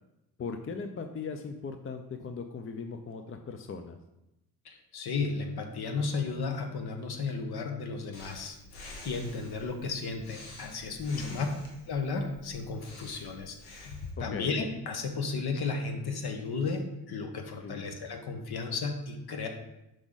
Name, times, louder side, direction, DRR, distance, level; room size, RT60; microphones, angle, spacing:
voice 1, 0.4-4.0 11.1-11.5 14.2-14.6 17.6-17.8, left 5 dB, 30° left, 7 dB, 0.6 m, -39 dB
voice 2, 4.6-11.5 11.9-19.5, left 4 dB, 55° left, 5 dB, 1.3 m, -34 dB
Breathing, 8.1-14.1, left 1 dB, 85° left, 1.5 m, -49 dB
5.9 x 5.1 x 3.9 m, 0.92 s
hypercardioid pair, 50°, 47 cm